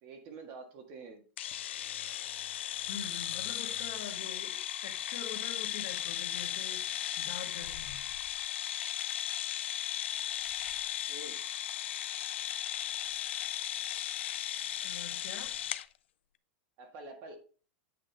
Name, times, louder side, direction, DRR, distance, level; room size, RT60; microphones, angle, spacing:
voice 1, 0.0-1.2 11.1-11.4 16.8-17.4, right 3 dB, 35° right, 1.7 m, -47 dB
sound 1, 1.4-15.9, left 12 dB, 90° left, 0.6 m, -36 dB
voice 2, 2.8-8.1 14.8-15.6, left 7 dB, 50° left, 1.7 m, -45 dB
8.6 x 6.0 x 3.5 m
supercardioid pair, 180°, 6 cm